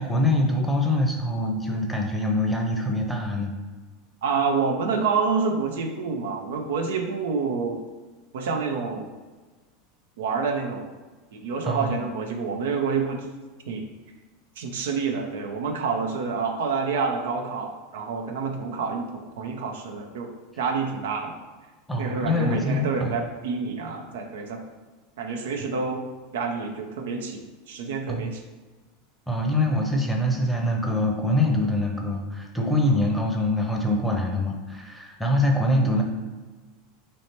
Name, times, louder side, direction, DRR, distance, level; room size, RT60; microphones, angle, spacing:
voice 1, 0.0-3.5 11.6-12.0 21.9-23.1 23.8-24.0 28.1-28.3 29.3-36.0, left 1 dB, 5° left, 0 dB, 0.8 m, -24 dB
voice 2, 4.2-7.8 8.3-9.1 10.2-10.9 11.3-13.3 13.7-13.9 14.6-20.3 20.6-21.3 22.0-24.6 25.2-26.0 26.3-27.4 27.7-28.4, right 5 dB, 65° right, 3 dB, 0.5 m, -28 dB
3.2 x 2.8 x 4.3 m, 1.3 s
figure-of-eight pair, 85°, 0 cm